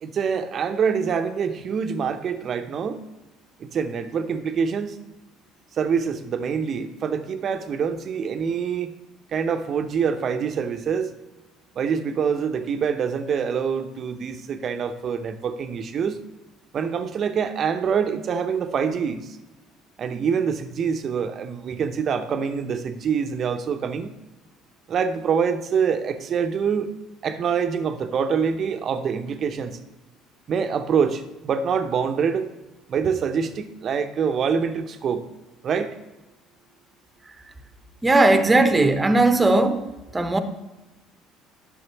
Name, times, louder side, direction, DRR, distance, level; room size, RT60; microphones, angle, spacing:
voice 1, 0.0-3.0 3.6-5.0 5.8-8.9 9.3-11.1 11.8-16.2 16.7-19.4 20.0-24.1 24.9-26.9 27.2-29.8 30.5-32.5 32.9-35.2 35.6-35.9, right 6 dB, 50° right, 9 dB, 0.7 m, -25 dB
voice 2, 38.0-39.8 40.1-40.4, right 2 dB, 20° right, 9 dB, 0.9 m, -18 dB
10.5 x 6.5 x 3.0 m, 1.1 s
hypercardioid pair, 60°, 0 cm